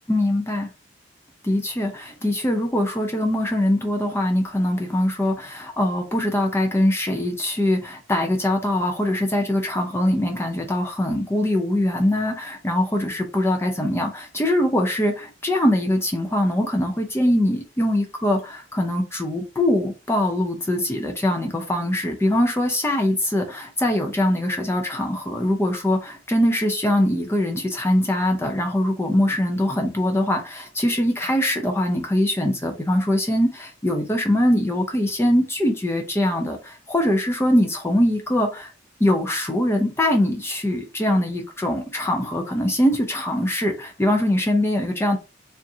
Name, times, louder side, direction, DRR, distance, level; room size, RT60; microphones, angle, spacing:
voice 1, 0.1-0.7 1.4-38.7 39.0-45.2, left 1 dB, 15° left, 0.5 m, -22 dB
4.3 x 2.4 x 2.7 m
head